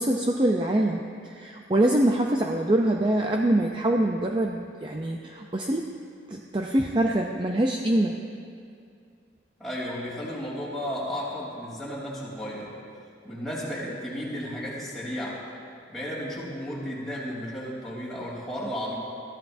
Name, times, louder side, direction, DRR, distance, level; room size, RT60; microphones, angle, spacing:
voice 1, 0.0-5.9 6.3-8.2, right 1 dB, 25° right, 1 dB, 0.5 m, -24 dB
voice 2, 9.6-12.7 13.2-15.4 15.9-19.0, equal, ahead, -7 dB, 3.4 m, -33 dB
21.5 x 14.5 x 2.7 m, 2.3 s
head